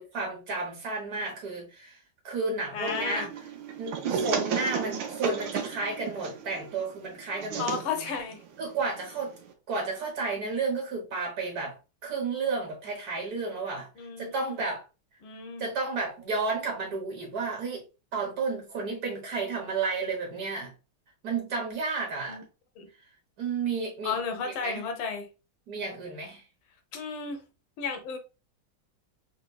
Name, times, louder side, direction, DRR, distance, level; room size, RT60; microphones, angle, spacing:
voice 1, 0.0-3.3 3.8-7.7 8.6-9.3 9.7-13.9 14.2-14.8 15.6-17.8 18.1-20.7 21.2-22.4 23.4-24.2 24.4-24.8 25.7-26.4, right 4 dB, 55° right, 1.4 m, -32 dB
voice 2, 2.7-3.3 7.6-8.4 14.0-14.6 15.2-15.7 22.3-22.4 22.8-22.9 24.0-25.3 26.9-27.4 27.8-28.2, left 5 dB, 80° left, 1.5 m, -33 dB
sound 1, 2.9-9.5, right 7 dB, 70° right, 1.3 m, -34 dB
3.9 x 2.9 x 2.2 m
omnidirectional pair, 2.2 m